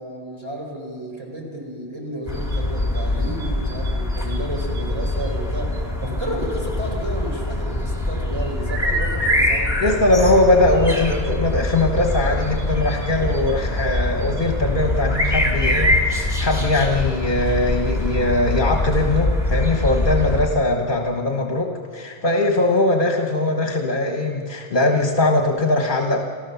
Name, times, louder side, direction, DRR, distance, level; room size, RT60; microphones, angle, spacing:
voice 1, 0.0-9.8 10.6-10.7, equal, 25° right, -1 dB, 4.5 m, -32 dB
sound 1, 2.3-20.5, left 1 dB, 25° left, 3.1 m, -23 dB
voice 2, 9.8-26.3, left 2 dB, 50° left, 4 dB, 1.5 m, -20 dB
29.5 x 14.0 x 7.0 m, 2.1 s
omnidirectional pair, 1.1 m